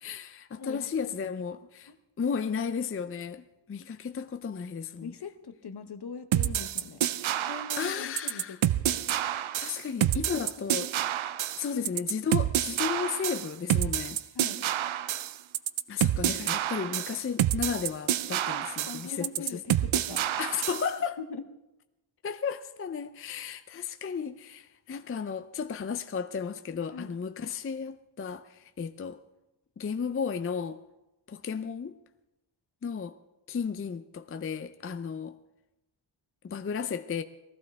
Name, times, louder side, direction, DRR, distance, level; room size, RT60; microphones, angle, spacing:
voice 1, 0.0-1.9 2.2-5.1 7.4-7.5 7.8-8.6 9.6-10.9 11.6-14.2 15.9-19.4 20.4-21.2 22.2-29.2 29.8-30.8 31.3-31.9 32.8-33.2 33.5-35.4 36.4-37.2, left 6 dB, 30° left, 0.4 m, -34 dB
voice 2, 0.6-1.4 1.9-2.0 5.0-7.0 7.4-9.0 10.2-10.4 11.7-11.9 14.3-14.6 18.8-20.3 21.2-21.5 26.9-27.2, left 5 dB, 55° left, 0.9 m, -41 dB
sound 1, 6.3-20.9, right 11 dB, 85° right, 0.6 m, -28 dB
19.5 x 14.5 x 3.5 m
wide cardioid pair, 135°, 47 cm